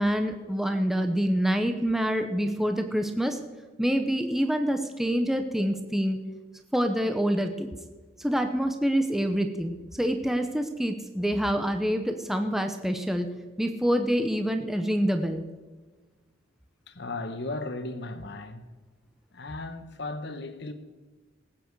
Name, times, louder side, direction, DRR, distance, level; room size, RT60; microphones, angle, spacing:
voice 1, 0.0-3.4 3.8-6.2 6.7-7.7 8.2-13.3 13.6-15.5, equal, ahead, 0.8 m, -26 dB
voice 2, 16.9-18.7 19.3-20.7, left 2 dB, 55° left, 1.1 m, -36 dB
19.0 x 9.0 x 4.7 m
head